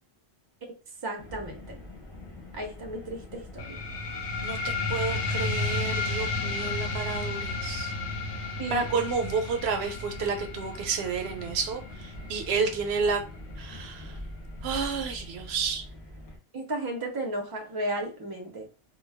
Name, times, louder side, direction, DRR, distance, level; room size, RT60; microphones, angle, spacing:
voice 1, 1.0-1.8 2.5-3.8 8.6-8.9 16.5-18.7, right 1 dB, 30° right, 3 dB, 0.5 m, -34 dB
Car, 1.2-16.4, left 1 dB, 30° left, 0.6 m, -44 dB
sound 1, 3.6-14.6, left 3 dB, 80° left, 1.0 m, -33 dB
voice 2, 4.4-7.9 8.7-13.2 13.6-14.2 14.6-15.8, right 5 dB, 70° right, 6 dB, 0.8 m, -30 dB
2.2 x 2.2 x 3.3 m, 0.35 s
omnidirectional pair, 1.1 m